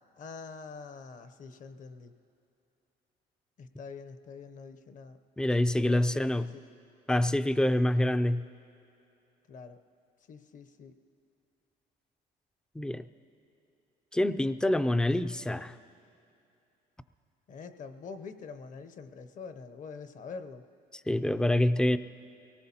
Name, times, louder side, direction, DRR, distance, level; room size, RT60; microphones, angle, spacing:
voice 1, 0.1-2.1 3.6-5.2 5.8-6.6 9.5-9.8 10.3-11.0 17.5-20.6, left 5 dB, 50° left, 11 dB, 0.7 m, -45 dB
voice 2, 5.4-6.5 7.1-8.4 12.8-13.0 14.1-15.8 21.1-22.0, left 1 dB, 5° left, 12 dB, 0.3 m, -26 dB
24.0 x 18.5 x 2.8 m, 2.7 s
cardioid pair, 110°, 17 cm